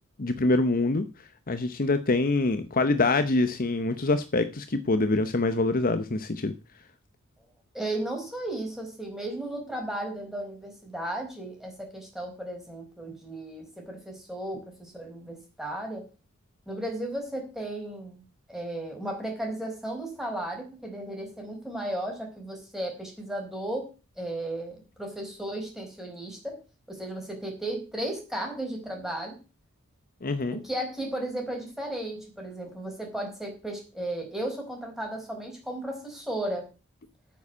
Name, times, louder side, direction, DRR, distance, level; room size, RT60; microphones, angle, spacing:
voice 1, 0.2-1.1 1.5-6.5 30.2-30.6, left 2 dB, 40° left, 10 dB, 0.8 m, -25 dB
voice 2, 7.7-16.1 16.7-18.2 18.5-23.9 24.2-26.6 26.9-29.4 30.5-36.7, right 1 dB, ahead, 1 dB, 4.7 m, -35 dB
9.0 x 7.5 x 8.2 m, 0.32 s
head